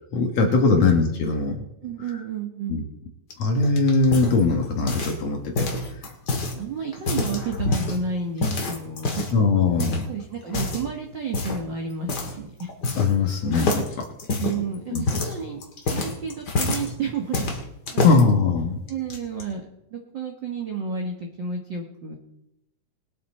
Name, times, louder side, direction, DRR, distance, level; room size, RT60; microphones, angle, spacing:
voice 1, 0.1-1.6 2.7-2.8 3.4-5.7 9.3-10.1 12.9-14.0 14.9-15.0 18.0-18.8, left 4 dB, 60° left, 3 dB, 2.0 m, -21 dB
voice 2, 1.8-2.8 6.4-9.3 10.1-12.7 13.4-13.8 14.4-15.6 15.9-17.5 17.9-18.2 18.9-19.6 19.9-22.2, right 5 dB, 70° right, 2 dB, 1.1 m, -31 dB
sound 1, 3.3-5.2 5.5-6.5 6.9-8.0 8.4-9.4 9.8-10.0 10.5-10.9 11.3-11.6 12.1-12.3 12.6-13.2 13.5-16.9 17.3-18.2 18.9-19.4, left 2 dB, 40° left, 1.6 m, -27 dB
21.0 x 8.6 x 4.2 m, 0.86 s
omnidirectional pair, 4.2 m